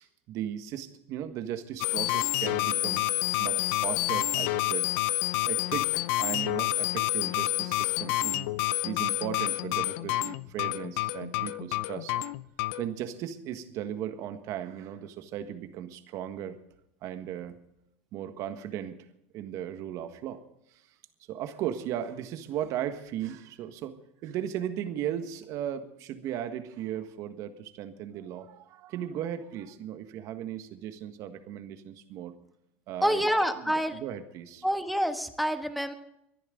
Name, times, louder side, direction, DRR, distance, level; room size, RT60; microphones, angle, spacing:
voice 1, 0.0-3.0 3.4-4.9 5.5-8.5 8.8-12.2 12.8-16.6 17.0-17.6 18.1-19.0 19.3-20.4 21.3-32.4 32.9-33.3 33.6-34.6, right 10 dB, 50° right, 9 dB, 1.6 m, -36 dB
sound 1, 1.8-12.9, left 17 dB, 70° left, 0.7 m, -29 dB
voice 2, 33.0-34.0 34.6-35.9, equal, ahead, 8 dB, 1.4 m, -27 dB
24.5 x 11.0 x 3.9 m, 0.80 s
supercardioid pair, 115°, 7 cm